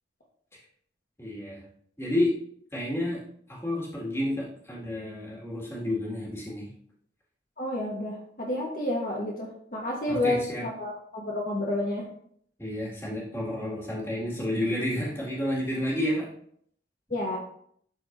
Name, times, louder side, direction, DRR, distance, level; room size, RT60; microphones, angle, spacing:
voice 1, 1.2-1.6 2.0-2.3 2.7-3.2 3.5-6.7 10.1-10.7 12.6-16.3, left 1 dB, 15° left, -5 dB, 2.0 m, -30 dB
voice 2, 7.6-12.1 17.1-17.4, left 1 dB, 50° left, -2 dB, 1.2 m, -30 dB
11.5 x 4.6 x 2.6 m, 0.65 s
head